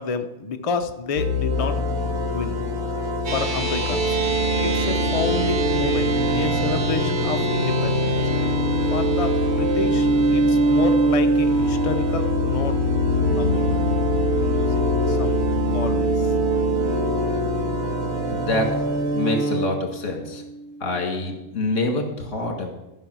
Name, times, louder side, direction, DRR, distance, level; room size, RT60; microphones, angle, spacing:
voice 1, 0.0-1.8 2.3-2.6 3.3-4.0 4.6-8.2 8.9-12.8 13.4-13.7 14.5-15.4 15.7-16.3, left 5 dB, 45° left, 6 dB, 0.4 m, -29 dB
sound 1, 1.2-19.7, equal, 85° right, 1.7 m, -23 dB
sound 2, 3.3-21.8, right 3 dB, 45° right, 1.1 m, -30 dB
voice 2, 18.3-18.7 19.1-20.4 20.8-22.7, left 2 dB, 60° left, 3 dB, 2.0 m, -26 dB
13.5 x 5.4 x 6.1 m, 0.97 s
omnidirectional pair, 1.5 m